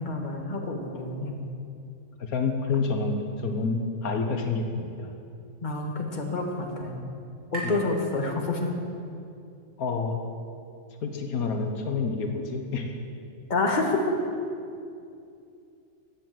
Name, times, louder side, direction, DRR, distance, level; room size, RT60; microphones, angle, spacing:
voice 1, 0.0-1.4 5.6-7.1 7.5-8.7 13.5-14.2, left 2 dB, 35° left, 1 dB, 1.7 m, -28 dB
voice 2, 2.2-5.1 7.6-7.7 9.8-10.2 11.0-13.0, left 4 dB, 85° left, 4 dB, 1.6 m, -28 dB
sound 1, 5.2-9.0, right 2 dB, 60° right, 2.9 m, -44 dB
15.0 x 9.3 x 7.7 m, 2.5 s
omnidirectional pair, 1.5 m